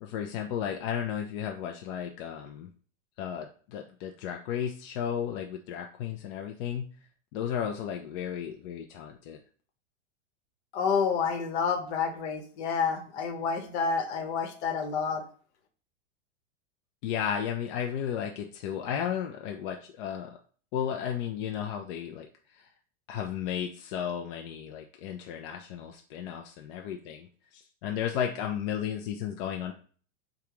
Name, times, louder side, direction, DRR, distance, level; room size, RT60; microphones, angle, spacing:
voice 1, 0.0-2.7 3.2-6.9 7.3-9.4 17.0-20.4 20.7-22.3 22.6-22.7 23.1-27.3 27.5-29.7, left 9 dB, 45° left, 2 dB, 0.5 m, -34 dB
voice 2, 10.7-15.2, left 5 dB, 60° left, 5 dB, 1.1 m, -29 dB
4.8 x 2.3 x 3.0 m, 0.43 s
supercardioid pair, 135°, 37 cm